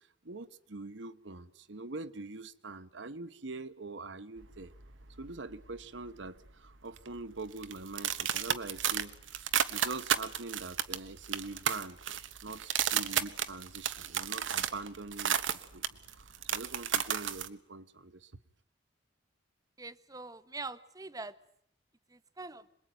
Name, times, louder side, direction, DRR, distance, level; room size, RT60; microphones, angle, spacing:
voice 1, 0.2-4.7 5.2-12.0 12.4-15.8 16.4-18.3, right 3 dB, 70° right, 1.1 m, -43 dB
sound 1, 4.4-5.8 6.1-6.5 7.0-17.5, right 9 dB, 90° right, 1.2 m, -33 dB
voice 2, 19.8-21.3 22.1-22.6, right 3 dB, 20° right, 1.0 m, -43 dB
26.5 x 21.0 x 9.2 m
head